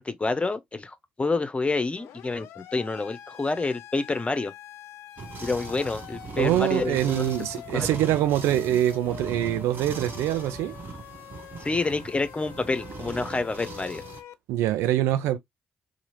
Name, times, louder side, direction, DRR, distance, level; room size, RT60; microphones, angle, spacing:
voice 1, 0.0-4.5 5.4-7.3 7.7-7.9 11.6-14.0, left 3 dB, 25° left, 0.6 m, -28 dB
Siren, 2.0-14.3, left 11 dB, 70° left, 0.3 m, -45 dB
sound 1, 5.2-14.2, right 4 dB, 50° right, 0.9 m, -39 dB
voice 2, 6.4-10.7 14.5-15.4, right 12 dB, 75° right, 0.4 m, -24 dB
2.8 x 2.6 x 2.9 m
hypercardioid pair, 40°, 5 cm